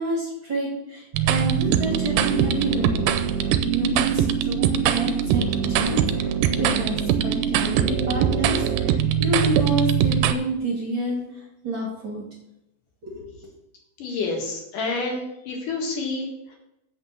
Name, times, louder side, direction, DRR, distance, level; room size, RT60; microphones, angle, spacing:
voice 1, 0.0-3.0 3.7-6.3 6.6-12.2 13.0-13.5, right 1 dB, 40° right, -3 dB, 2.3 m, -28 dB
sound 1, 1.1-10.3, right 9 dB, 80° right, 2.2 m, -22 dB
voice 2, 14.0-16.6, left 3 dB, 65° left, 0 dB, 3.2 m, -29 dB
7.9 x 6.0 x 6.9 m, 0.85 s
omnidirectional pair, 4.1 m